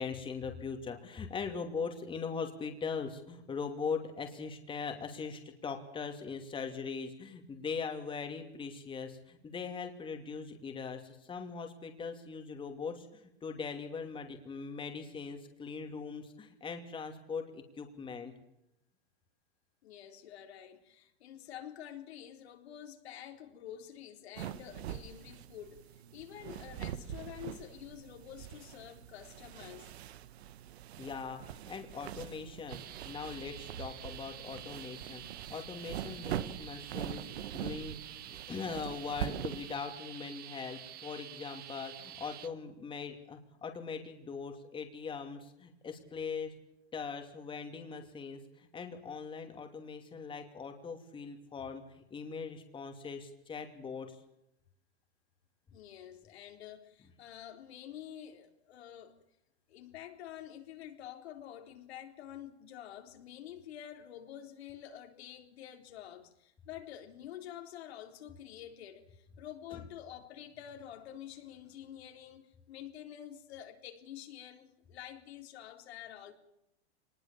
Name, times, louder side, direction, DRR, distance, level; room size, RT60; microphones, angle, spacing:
voice 1, 0.0-18.3 31.0-46.5 46.9-54.2 69.7-69.8, left 5 dB, 15° left, 2.7 m, -41 dB
voice 2, 19.8-29.9 55.7-59.2 59.7-76.3, left 10 dB, 75° left, 4.0 m, -48 dB
sound 1, 24.4-39.8, right 11 dB, 75° right, 1.6 m, -43 dB
sound 2, 32.7-42.5, right 12 dB, 30° right, 1.5 m, -49 dB
23.5 x 20.0 x 7.2 m
supercardioid pair, 140°, 32 cm